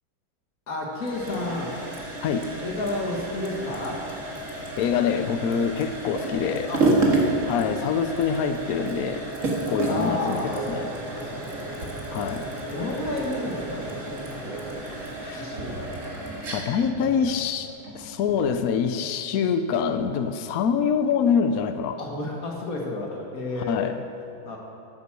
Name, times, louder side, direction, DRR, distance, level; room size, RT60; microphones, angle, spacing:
voice 1, 0.7-1.8 2.5-4.0 6.7-7.2 9.9-11.7 12.5-15.1 15.3-16.3 16.7-17.3 19.0-19.1 22.0-23.8 24.4-24.6, left 2 dB, 45° left, -1 dB, 2.1 m, -32 dB
sound 1, 0.9-18.6, right 2 dB, 40° right, 2.0 m, -31 dB
voice 2, 4.8-6.7 7.5-9.2 9.7-10.9 12.1-12.5 15.2-15.4 16.5-22.0 23.7-23.9, left 6 dB, 80° left, 9 dB, 0.8 m, -25 dB
sound 2, 9.7-14.7, right 2 dB, ahead, 1.4 m, -38 dB
14.0 x 8.2 x 6.1 m, 2.6 s
omnidirectional pair, 2.2 m